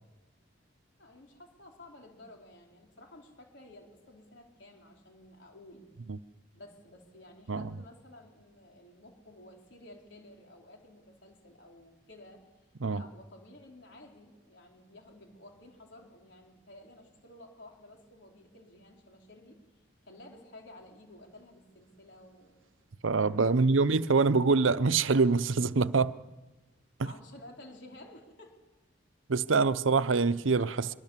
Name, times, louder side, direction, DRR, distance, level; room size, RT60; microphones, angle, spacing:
voice 1, 1.0-5.9 6.5-12.5 12.9-19.6 20.0-22.6 23.4-23.9 27.0-28.5, left 1 dB, 60° left, 4.5 m, -53 dB
voice 2, 23.0-26.2 29.3-30.9, right 4 dB, 85° right, 0.7 m, -25 dB
24.5 x 23.0 x 7.4 m
head